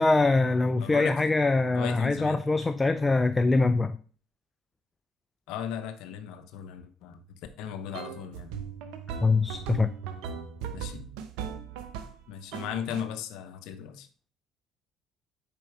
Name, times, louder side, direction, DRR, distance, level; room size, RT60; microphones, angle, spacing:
voice 1, 0.0-4.0 9.2-9.9, left 3 dB, 20° left, 10 dB, 0.4 m, -23 dB
voice 2, 0.8-1.2 1.7-2.4 5.5-8.5 10.7-11.1 12.3-14.1, left 9 dB, 75° left, 10 dB, 0.7 m, -37 dB
sound 1, 7.9-12.2 12.5-13.0, right 7 dB, 80° right, 0.8 m, -38 dB
5.2 x 4.5 x 4.6 m, 0.41 s
supercardioid pair, 70°, 0 cm